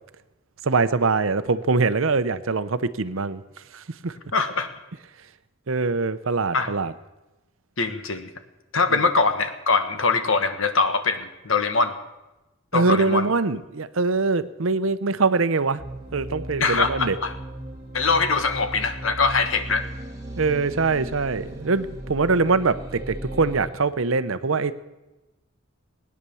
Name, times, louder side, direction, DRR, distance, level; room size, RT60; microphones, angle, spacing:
voice 1, 0.6-3.4 3.7-4.1 5.7-6.9 12.7-15.8 16.1-17.2 20.4-24.7, right 4 dB, 65° right, 13 dB, 0.7 m, -23 dB
voice 2, 4.3-4.7 6.5-6.7 7.8-8.3 8.7-11.9 12.7-13.3 16.6-17.3 17.9-19.9, left 4 dB, 65° left, 8 dB, 1.4 m, -22 dB
sound 1, 15.8-23.7, right 1 dB, 15° right, 2.0 m, -37 dB
20.0 x 9.7 x 7.0 m, 1.0 s
head